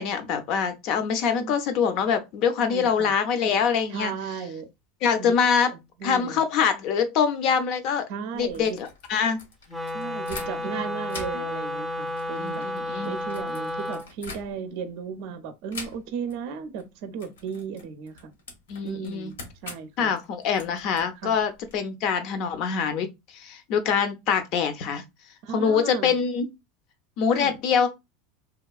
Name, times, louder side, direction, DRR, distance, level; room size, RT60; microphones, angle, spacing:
voice 1, 0.0-4.1 5.0-5.7 6.0-8.1 8.3-9.4 10.8-10.9 11.3-11.4 12.4-13.2 18.7-19.3 20.0-23.1 23.3-25.0 25.5-26.5 27.2-27.9, left 6 dB, 55° left, 0.5 m, -24 dB
voice 2, 2.6-3.1 3.9-4.7 5.2-5.3 6.0-6.4 8.1-8.8 9.9-12.7 13.0-18.4 18.8-20.1 21.2-21.4 25.4-26.2 27.3-27.5, right 6 dB, 60° right, 0.4 m, -35 dB
sound 1, 8.3-10.8 11.1-14.9 15.7-16.4 16.6-16.9 17.2-21.8, left 3 dB, 90° left, 0.8 m, -44 dB
Wind instrument woodwind instrument, 9.7-14.1, left 1 dB, 5° right, 0.5 m, -32 dB
2.9 x 2.2 x 2.3 m
hypercardioid pair, 95°, 0 cm